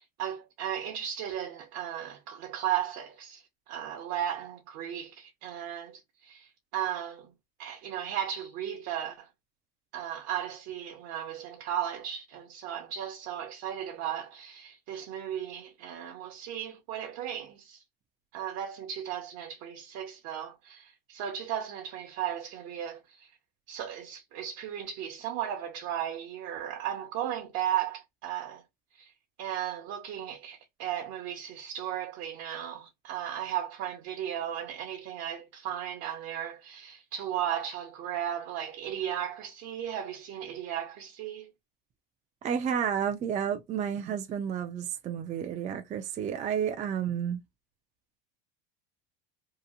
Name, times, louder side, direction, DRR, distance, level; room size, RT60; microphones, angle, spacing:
voice 1, 0.0-7.3 7.6-9.3 9.9-17.8 18.3-23.3 23.7-28.6 28.9-29.1 29.4-41.5, right 10 dB, 60° right, 0.8 m, -35 dB
voice 2, 42.4-47.4, right 8 dB, 25° right, 0.4 m, -31 dB
2.9 x 2.5 x 2.3 m
supercardioid pair, 120°, 29 cm